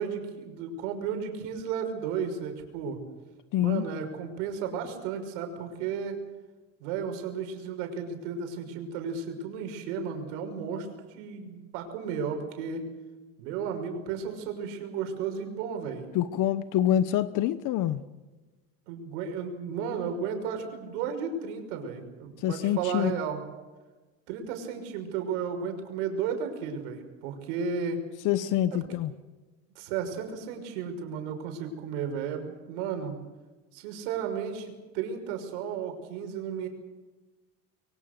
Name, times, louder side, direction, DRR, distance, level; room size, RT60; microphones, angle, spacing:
voice 1, 0.0-3.0 3.6-6.2 6.8-12.9 13.4-16.1 18.9-23.4 24.3-28.0 28.7-28.8 29.7-33.2 33.7-36.7, right 6 dB, 85° right, 5 dB, 6.1 m, -34 dB
voice 2, 3.5-3.8 16.1-18.0 22.4-23.1 28.2-29.1, left 12 dB, 60° left, 13 dB, 1.2 m, -26 dB
25.0 x 23.5 x 6.8 m, 1.2 s
supercardioid pair, 115°, 35 cm